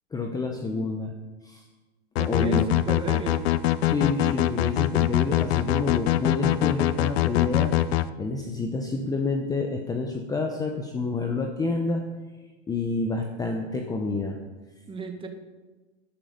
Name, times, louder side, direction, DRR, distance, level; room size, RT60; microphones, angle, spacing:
voice 1, 0.1-1.1 1.4-1.7 2.3-2.7 3.8-7.7 8.2-12.0 12.7-14.4, left 3 dB, 10° left, 3 dB, 0.9 m, -28 dB
sound 1, 2.2-8.1, left 14 dB, 60° left, 0.7 m, -23 dB
voice 2, 2.2-3.5 14.9-15.3, right 4 dB, 15° right, 5 dB, 1.6 m, -34 dB
13.0 x 11.5 x 5.2 m, 1.2 s
hypercardioid pair, 135°, 35 cm